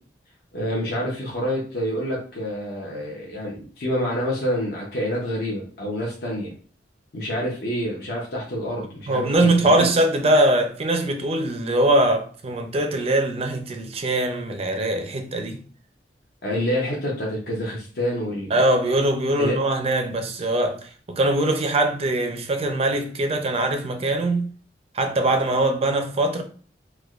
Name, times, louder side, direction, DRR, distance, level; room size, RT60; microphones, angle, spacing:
voice 1, 0.5-6.5 7.1-9.9 16.4-18.6 19.4-19.6, equal, 60° left, 0.8 m, -27 dB
voice 2, 9.1-15.6 18.5-24.5 24.9-26.4, right 1 dB, 35° right, 0.4 m, -22 dB
4.6 x 2.2 x 2.4 m
head